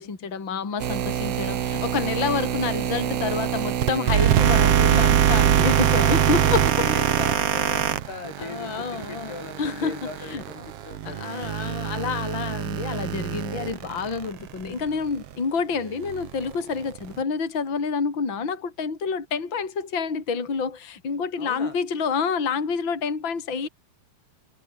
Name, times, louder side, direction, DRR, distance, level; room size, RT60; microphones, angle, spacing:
voice 1, 0.0-6.9 8.4-10.0 10.3-10.4 11.0-23.7, left 5 dB, 30° left, 4.2 m, -28 dB
sound 1, 0.8-14.9 15.3-15.4 16.0-17.2, right 10 dB, 70° right, 1.4 m, -23 dB
voice 2, 5.8-11.3 21.4-21.8, left 4 dB, 75° left, 9.3 m, -39 dB
omnidirectional pair, 4.7 m